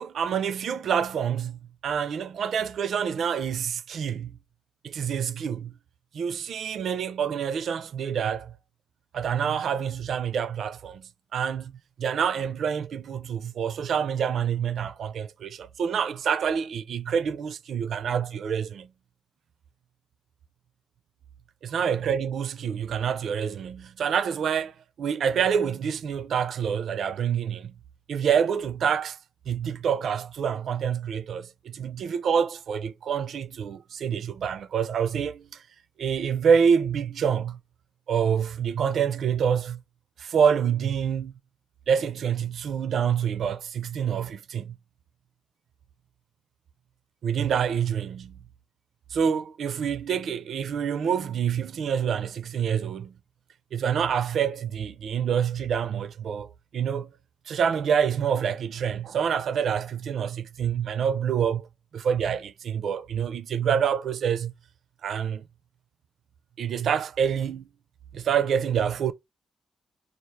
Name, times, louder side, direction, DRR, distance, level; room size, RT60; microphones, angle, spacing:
voice 1, 0.0-4.4 4.8-5.7 6.1-8.5 9.1-18.9 21.7-27.7 28.1-29.2 29.5-35.6 36.0-37.6 38.1-39.8 40.2-41.3 41.9-44.7 47.2-48.4 49.1-53.1 53.7-57.1 57.5-61.7 61.9-64.5 65.0-65.4 66.6-67.6 68.1-69.1, right 7 dB, 75° right, 0.4 m, -27 dB
4.6 x 2.4 x 3.3 m
wide cardioid pair, 125°, 0 cm